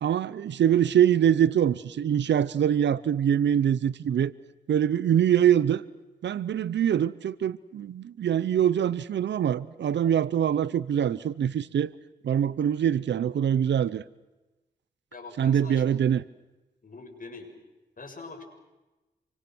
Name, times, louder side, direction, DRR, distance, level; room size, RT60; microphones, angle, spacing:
voice 1, 0.0-4.3 4.7-5.8 6.2-11.9 12.2-14.0 15.4-16.2, right 9 dB, 85° right, 18 dB, 0.8 m, -24 dB
voice 2, 15.1-15.8 16.8-17.5 18.0-18.4, left 3 dB, 50° left, 4 dB, 6.9 m, -43 dB
28.0 x 24.5 x 6.3 m, 1.1 s
cardioid pair, 55°, 18 cm